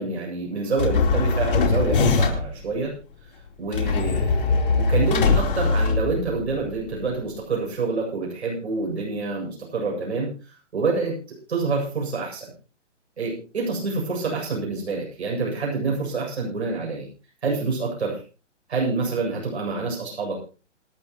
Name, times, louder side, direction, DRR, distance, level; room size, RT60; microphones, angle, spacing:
voice 1, 0.0-2.9 3.6-10.3 10.7-12.5 13.2-17.1 17.4-18.2 18.7-20.4, right 4 dB, 60° right, -1 dB, 7.9 m, -27 dB
sound 1, 0.8-2.6 3.7-6.6, left 4 dB, 45° left, 4.3 m, -21 dB
27.5 x 9.2 x 3.1 m, 0.35 s
hypercardioid pair, 170°, 37 cm